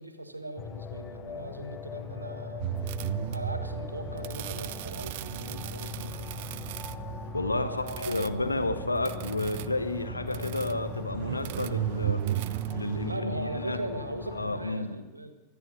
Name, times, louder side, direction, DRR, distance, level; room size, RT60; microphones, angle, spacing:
voice 1, 0.0-2.7 3.3-6.3 7.5-8.7 10.1-10.8 13.0-15.3, right 1 dB, 85° right, 8 dB, 1.4 m, -39 dB
sound 1, 0.6-14.7, left 6 dB, 25° left, 1.0 m, -41 dB
sound 2, 2.6-13.2, right 14 dB, 50° right, 0.4 m, -35 dB
voice 2, 7.3-12.2 12.7-13.8 14.1-14.9, left 2 dB, 80° left, 8 dB, 1.2 m, -31 dB
24.5 x 8.3 x 6.5 m, 1.2 s
figure-of-eight pair, 90°, 0 cm